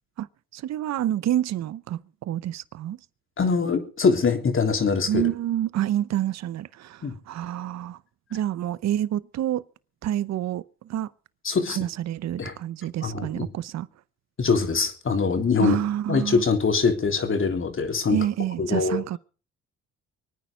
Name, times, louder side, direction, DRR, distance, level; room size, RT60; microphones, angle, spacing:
voice 1, 0.5-3.0 5.1-8.0 8.3-9.6 10.0-11.1 11.7-13.9 15.6-16.4 18.1-19.2, right 12 dB, 65° right, 0.8 m, -28 dB
voice 2, 3.4-5.3 7.0-7.1 11.4-11.8 12.4-12.5 13.0-13.5 14.4-15.8 16.1-18.2 18.6-19.0, left 5 dB, 45° left, 3.4 m, -23 dB
24.5 x 9.5 x 5.1 m
supercardioid pair, 70°, 30 cm